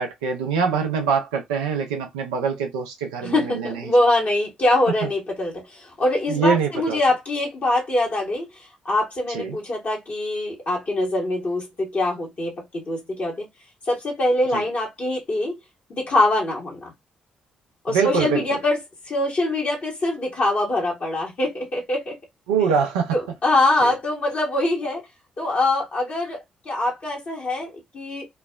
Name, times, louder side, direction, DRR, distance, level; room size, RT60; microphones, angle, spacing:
voice 1, 0.0-3.8 5.0-5.1 6.3-7.0 9.3-9.6 14.5-14.6 17.9-18.4 22.5-23.2 23.8-23.9, right 5 dB, 90° right, 0.6 m, -24 dB
voice 2, 3.2-8.5 8.8-13.5 13.9-15.6 15.9-16.9 17.8-18.8 19.1-22.2 23.1-25.0 25.4-28.3, left 2 dB, 50° left, 1.3 m, -23 dB
3.1 x 2.1 x 2.3 m
hypercardioid pair, 45°, 3 cm